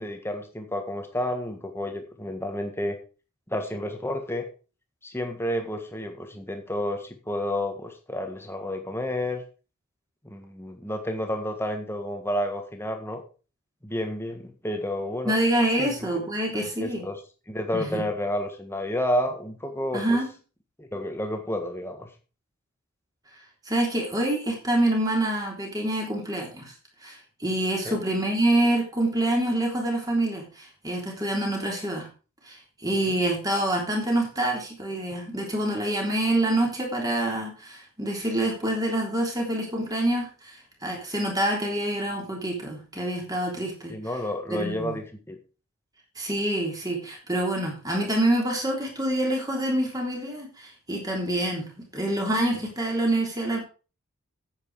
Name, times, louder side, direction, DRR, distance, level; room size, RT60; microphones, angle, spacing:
voice 1, 0.0-3.0 3.5-4.4 5.0-9.4 10.2-13.2 13.8-15.3 15.8-15.9 16.8-20.2 20.8-22.1 27.8-28.0 33.1-33.2 43.9-45.4, left 1 dB, 10° left, 5 dB, 1.6 m, -30 dB
voice 2, 15.2-17.0 17.7-18.0 19.9-20.3 23.6-26.7 27.0-32.1 32.4-43.9 44.5-45.0 46.1-51.6 51.9-53.6, right 1 dB, 15° right, 0 dB, 3.4 m, -26 dB
9.7 x 8.2 x 4.8 m, 0.35 s
head